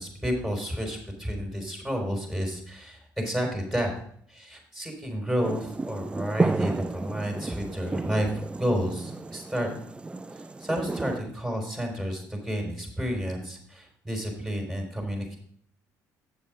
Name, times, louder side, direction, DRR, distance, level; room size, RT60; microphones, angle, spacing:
voice 1, 0.0-3.9 4.3-9.7 10.3-15.4, equal, ahead, 1 dB, 3.9 m, -31 dB
sound 1, 5.4-11.2, right 3 dB, 15° right, 0.4 m, -32 dB
8.6 x 7.1 x 4.9 m, 0.63 s
supercardioid pair, 75°, 7 cm